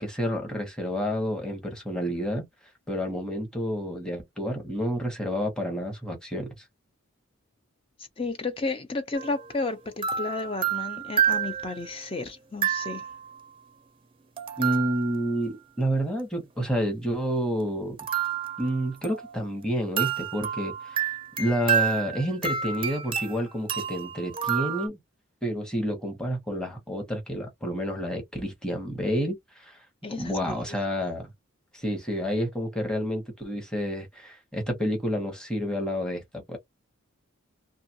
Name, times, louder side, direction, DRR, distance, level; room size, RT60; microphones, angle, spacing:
voice 1, 0.0-2.4 2.9-6.5 14.6-18.0 18.6-21.1 21.4-25.0 25.4-29.8 30.2-31.3 31.7-36.2 36.5-36.6, equal, 5° left, 0.9 m, -29 dB
voice 2, 8.2-13.1 30.0-30.8, left 3 dB, 25° left, 0.5 m, -32 dB
sound 1, 9.1-9.4 10.0-11.9 12.6-13.3 14.4-15.4 18.0-19.6 20.0-24.9, right 8 dB, 25° right, 0.5 m, -29 dB
2.6 x 2.4 x 2.7 m
head